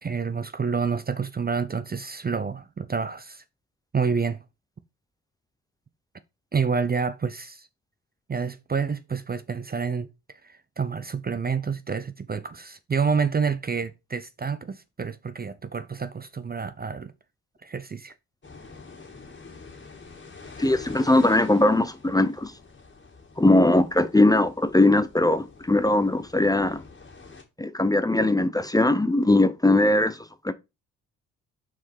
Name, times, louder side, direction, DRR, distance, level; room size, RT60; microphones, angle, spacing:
voice 1, 0.0-3.4 3.9-4.4 6.5-7.7 8.3-10.1 10.4-17.1 17.6-18.1, right 5 dB, 25° right, 0.6 m, -28 dB
sound 1, 18.4-27.4, left 4 dB, 30° left, 2.1 m, -46 dB
voice 2, 20.6-22.5 23.4-26.8 27.6-30.5, left 2 dB, 10° left, 0.7 m, -20 dB
5.8 x 4.8 x 4.6 m
hypercardioid pair, 50°, 37 cm